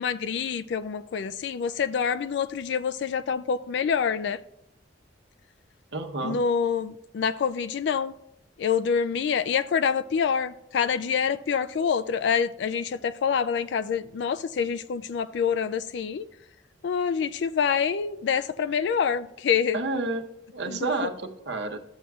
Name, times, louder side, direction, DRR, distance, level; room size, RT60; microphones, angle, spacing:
voice 1, 0.0-4.4 6.2-8.1 8.6-16.3 16.8-19.8 20.7-20.9, left 6 dB, 65° left, 0.3 m, -26 dB
voice 2, 5.9-6.4 19.7-20.2 20.5-21.8, right 3 dB, 65° right, 0.9 m, -30 dB
13.5 x 7.3 x 2.4 m
head